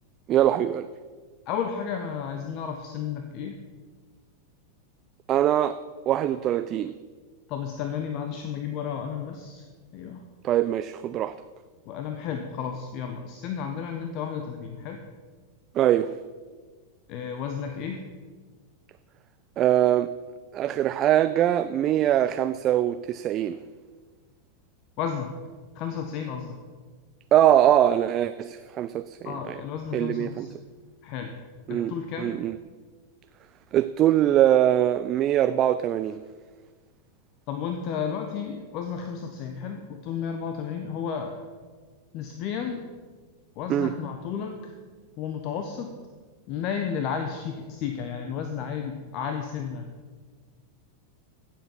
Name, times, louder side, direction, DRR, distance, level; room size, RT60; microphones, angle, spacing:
voice 1, 0.3-0.9 5.3-5.8 6.1-6.9 10.4-11.3 15.7-16.1 19.6-20.1 20.5-23.6 27.3-29.6 29.9-30.5 31.7-32.6 33.7-36.2 43.7-43.9, right 11 dB, 35° right, 12 dB, 0.4 m, -22 dB
voice 2, 1.5-3.6 7.5-9.7 9.9-10.2 11.1-11.2 11.9-15.0 17.1-18.1 25.0-25.3 25.7-26.6 29.2-30.6 31.0-31.3 31.7-32.3 37.5-41.4 42.1-42.8 43.6-44.7 45.2-45.9 46.5-49.8, left 7 dB, 40° left, 6 dB, 1.1 m, -32 dB
16.0 x 7.6 x 5.7 m, 1.5 s
figure-of-eight pair, 90°, 0 cm